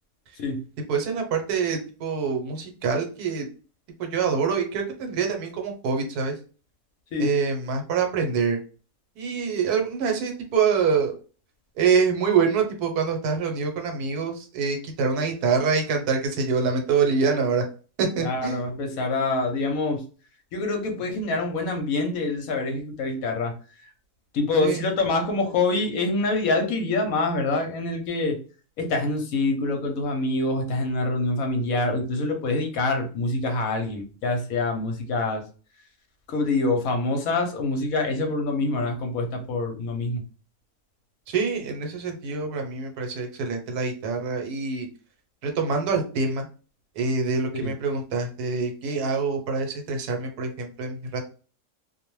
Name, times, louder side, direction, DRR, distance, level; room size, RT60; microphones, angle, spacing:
voice 1, 0.9-3.5 4.0-6.3 7.2-8.6 9.2-11.1 11.8-17.6 18.0-18.6 24.6-24.8 41.3-44.9 45.4-46.5 47.0-51.2, right 5 dB, 75° right, 3 dB, 1.2 m, -25 dB
voice 2, 18.2-20.0 20.5-23.5 24.3-28.4 28.8-35.4 36.3-40.2 47.6-47.7, left 2 dB, 70° left, 4 dB, 1.0 m, -25 dB
2.6 x 2.0 x 3.0 m, 0.36 s
omnidirectional pair, 1.7 m